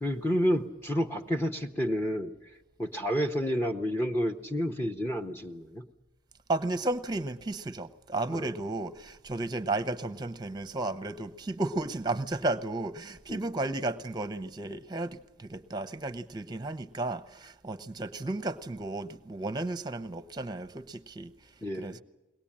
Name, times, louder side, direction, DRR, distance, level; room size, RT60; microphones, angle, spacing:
voice 1, 0.0-2.3 2.8-5.8 8.3-8.5 13.3-13.5 21.6-22.0, equal, 10° left, 3 dB, 0.8 m, -30 dB
voice 2, 6.5-21.3 21.7-22.0, right 2 dB, 20° right, 12 dB, 0.8 m, -33 dB
22.0 x 19.0 x 8.7 m, 1.1 s
head